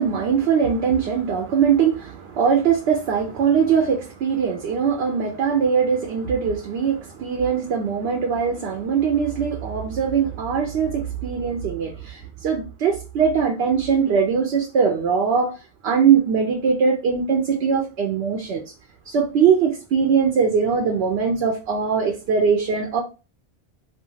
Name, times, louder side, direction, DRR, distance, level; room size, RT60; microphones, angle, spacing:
voice 1, 0.0-15.5 15.8-18.6 19.1-23.0, right 6 dB, 75° right, 0.8 m, -21 dB
2.4 x 2.3 x 3.0 m
omnidirectional pair, 1.1 m